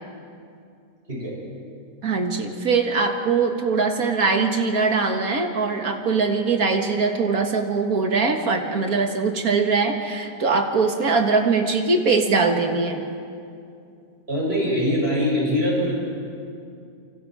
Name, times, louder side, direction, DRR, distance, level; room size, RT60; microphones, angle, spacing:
voice 1, 2.0-13.0, right 4 dB, 70° right, 4 dB, 2.2 m, -22 dB
voice 2, 14.3-15.9, equal, 40° right, -5 dB, 8.0 m, -22 dB
28.0 x 25.0 x 4.9 m, 2.5 s
omnidirectional pair, 1.6 m